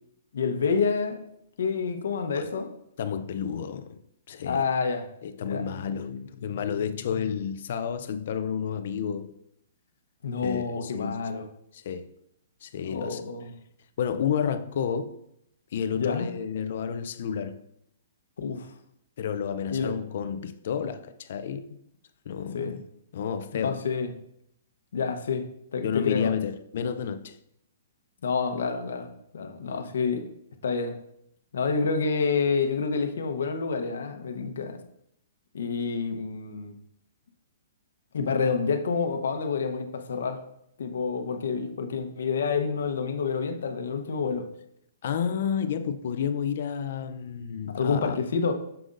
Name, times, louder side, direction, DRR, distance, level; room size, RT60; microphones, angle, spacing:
voice 1, 0.3-1.2 1.6-2.7 4.4-5.1 5.5-5.6 10.2-11.5 12.8-13.5 15.9-16.3 18.4-18.7 19.7-19.9 22.5-22.8 23.6-24.1 24.9-25.5 25.7-26.3 28.2-30.3 30.6-30.9 31.5-34.8 35.5-36.8 38.1-40.4 40.8-44.5 47.7-48.5, left 5 dB, 80° left, 0.8 m, -28 dB
voice 2, 3.0-4.0 4.3-4.6 5.2-9.3 10.4-11.2 11.7-12.1 12.6-13.2 14.0-15.1 15.7-17.6 19.2-21.8 22.3-22.8 23.1-23.8 25.8-27.4 45.0-48.2, left 7 dB, 55° left, 0.4 m, -30 dB
7.7 x 6.7 x 2.5 m
hypercardioid pair, 160°, 0 cm